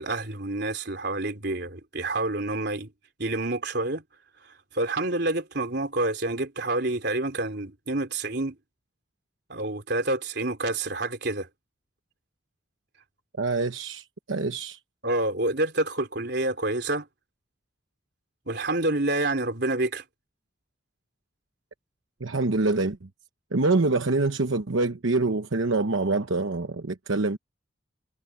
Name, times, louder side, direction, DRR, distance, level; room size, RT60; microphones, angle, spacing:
voice 1, 0.0-2.9 3.2-4.0 4.7-8.6 9.5-11.5 15.0-17.1 18.5-20.0, right 2 dB, 55° right, 3.9 m, -28 dB
voice 2, 13.4-14.8 22.2-23.1 23.5-27.4, right 3 dB, 80° right, 1.0 m, -25 dB
head